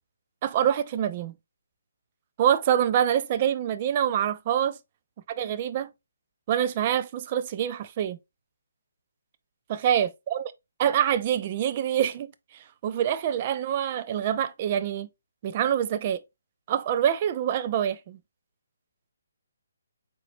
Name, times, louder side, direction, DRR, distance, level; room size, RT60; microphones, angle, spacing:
voice 1, 0.4-1.3 2.4-4.8 5.4-5.9 6.5-8.2 9.7-10.5 10.8-15.1 15.4-16.2 16.7-18.2, right 9 dB, 30° right, 0.5 m, -25 dB
5.7 x 3.8 x 2.5 m
figure-of-eight pair, 140°, 0 cm